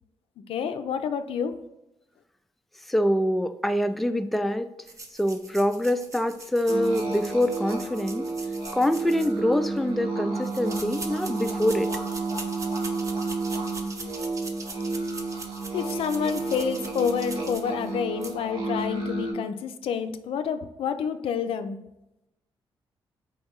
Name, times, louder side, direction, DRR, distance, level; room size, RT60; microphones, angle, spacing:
voice 1, 0.5-1.5 15.7-21.8, left 7 dB, 80° left, 9 dB, 0.4 m, -28 dB
voice 2, 2.9-4.7 5.2-8.3 8.7-12.0, left 1 dB, ahead, 8 dB, 0.3 m, -25 dB
sound 1, 4.9-9.8 10.4-17.9 18.2-18.3, right 2 dB, 35° right, 0.7 m, -42 dB
sound 2, 6.7-19.3, right 3 dB, 70° right, 1.4 m, -31 dB
4.5 x 3.0 x 3.6 m, 0.92 s
cardioid pair, 85°, 9 cm